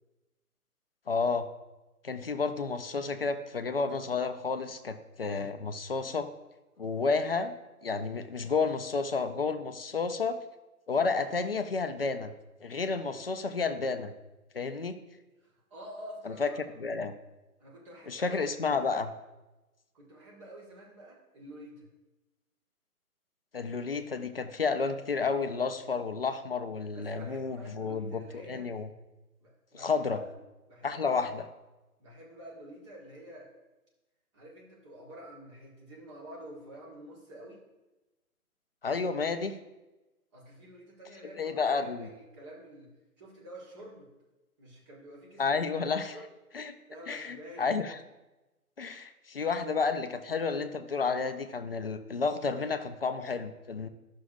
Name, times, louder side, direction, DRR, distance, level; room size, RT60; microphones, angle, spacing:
voice 1, 1.1-1.5 2.0-6.3 6.8-7.5 7.8-10.4 10.9-12.3 12.6-14.1 14.5-15.0 16.2-16.5 16.8-17.1 18.1-19.1 23.5-28.9 29.7-30.2 30.8-31.5 38.8-39.6 41.4-42.1 45.4-46.2 46.5-46.7 47.1-48.0 48.8-53.9, left 4 dB, 40° left, 9 dB, 0.5 m, -31 dB
voice 2, 15.4-16.6 17.6-18.4 18.7-18.9 19.9-21.9 26.9-28.7 29.4-30.0 30.3-30.4 30.7-31.2 32.0-33.5 34.3-37.6 40.3-44.1 44.6-45.6 46.1-46.3 46.9-47.7, right 1 dB, 20° right, -3 dB, 1.4 m, -49 dB
11.0 x 6.2 x 2.6 m, 1.1 s
figure-of-eight pair, 145°, 45 cm